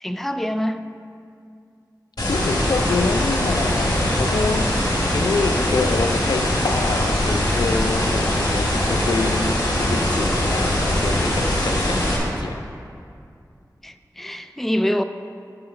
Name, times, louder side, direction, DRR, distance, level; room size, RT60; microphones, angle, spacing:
voice 1, 0.0-0.8 13.8-15.0, equal, 5° left, 9 dB, 0.3 m, -25 dB
voice 2, 2.2-12.6, left 4 dB, 85° left, 8 dB, 0.4 m, -27 dB
sound 1, 2.2-12.2, left 1 dB, 70° left, 1.7 m, -21 dB
8.7 x 3.8 x 6.7 m, 2.4 s
wide cardioid pair, 55°, 7 cm